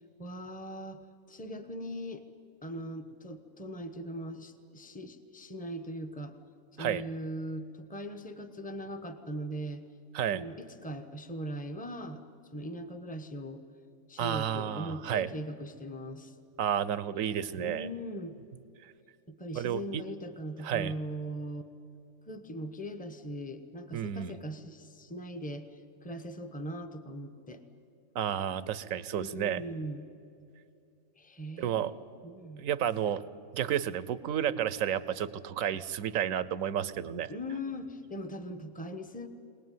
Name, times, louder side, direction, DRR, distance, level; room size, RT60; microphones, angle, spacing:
voice 1, 0.2-1.0 1.3-2.2 2.6-6.3 6.8-9.8 10.3-12.2 12.5-13.6 14.1-16.3 17.6-18.3 19.3-21.7 22.3-25.7 26.0-27.6 29.1-30.1 31.2-32.6 37.3-39.3, equal, 5° left, 8 dB, 1.0 m, -40 dB
voice 2, 14.2-15.3 16.6-17.9 18.8-18.9 19.5-20.0 20.6-20.9 23.9-24.4 28.1-29.6 31.6-31.9 32.6-33.2 33.5-37.3, right 9 dB, 70° right, 16 dB, 1.1 m, -31 dB
23.0 x 19.0 x 9.3 m, 2.5 s
omnidirectional pair, 1.5 m